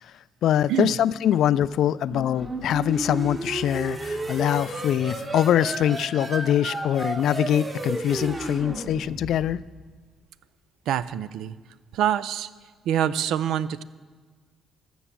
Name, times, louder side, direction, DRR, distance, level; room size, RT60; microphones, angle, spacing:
voice 1, 0.4-9.6, left 10 dB, 75° left, 18 dB, 0.3 m, -23 dB
sound 1, 2.1-9.7, right 2 dB, 30° right, 1.6 m, -33 dB
voice 2, 10.9-11.6 11.9-12.5 12.8-13.8, right 10 dB, 85° right, 16 dB, 0.4 m, -25 dB
14.0 x 6.2 x 7.2 m, 1.4 s
cardioid pair, 90°, 0 cm